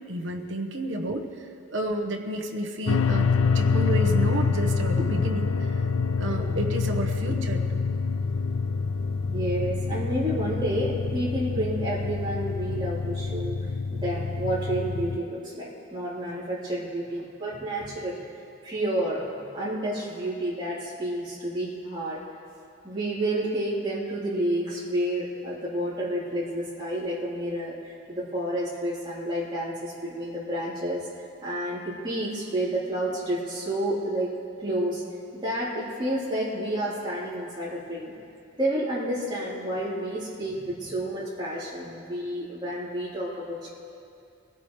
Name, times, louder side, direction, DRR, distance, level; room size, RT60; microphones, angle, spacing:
voice 1, 0.1-5.9 6.2-7.8, right 1 dB, 65° right, 3 dB, 1.3 m, -31 dB
sound 1, 2.9-15.2, left 4 dB, 70° left, 0.4 m, -26 dB
voice 2, 9.3-13.6 13.9-18.2 18.6-22.2 22.8-31.1 31.4-34.3 34.6-35.0 35.3-38.2 38.6-43.7, right 1 dB, 20° right, -9 dB, 3.7 m, -30 dB
24.5 x 16.5 x 3.3 m, 2.5 s
head